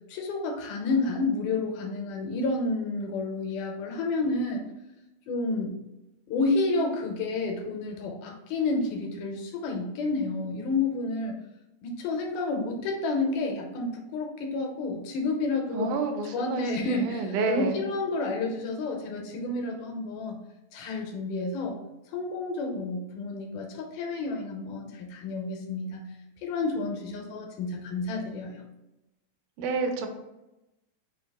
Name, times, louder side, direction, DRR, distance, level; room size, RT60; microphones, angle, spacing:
voice 1, 0.1-4.6 5.3-5.7 6.3-11.4 11.8-15.9 16.3-20.4 20.7-21.8 22.1-26.1 26.4-28.5, left 3 dB, 85° left, 2 dB, 2.3 m, -30 dB
voice 2, 15.7-17.8 29.6-30.1, right 3 dB, 80° right, 5 dB, 2.2 m, -29 dB
5.3 x 2.3 x 3.6 m, 0.96 s
omnidirectional pair, 3.7 m